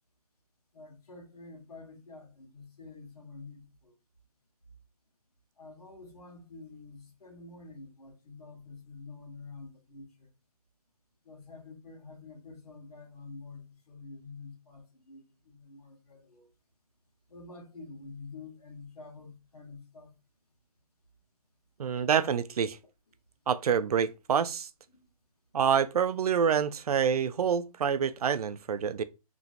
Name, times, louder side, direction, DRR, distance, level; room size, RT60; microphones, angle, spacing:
voice 1, 0.7-3.9 5.6-10.3 11.2-16.5 17.3-20.1 22.0-22.1 24.9-25.0, left 3 dB, 80° left, 1.4 m, -48 dB
voice 2, 21.8-22.8 23.5-24.7 25.5-29.0, right 7 dB, 75° right, 0.4 m, -27 dB
3.0 x 2.7 x 2.5 m
hypercardioid pair, 170°, 20 cm